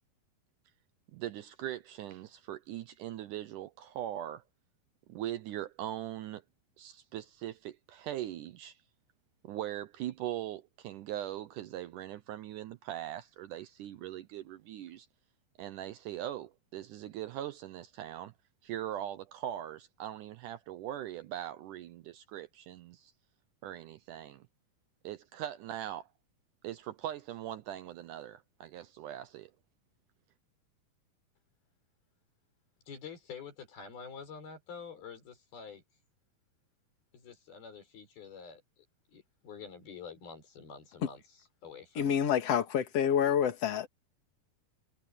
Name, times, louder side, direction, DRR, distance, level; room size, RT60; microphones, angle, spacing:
voice 1, 1.1-4.4 5.1-6.4 6.8-8.8 9.4-15.1 15.6-18.3 18.6-23.1 23.6-24.5 25.0-26.1 26.6-29.5, right 12 dB, 75° right, 2.0 m, -40 dB
voice 2, 32.9-35.8 37.1-41.2 41.6-42.0, left 6 dB, 85° left, 7.4 m, -47 dB
voice 3, 42.0-43.9, left 8 dB, 45° left, 2.9 m, -28 dB
omnidirectional pair, 4.2 m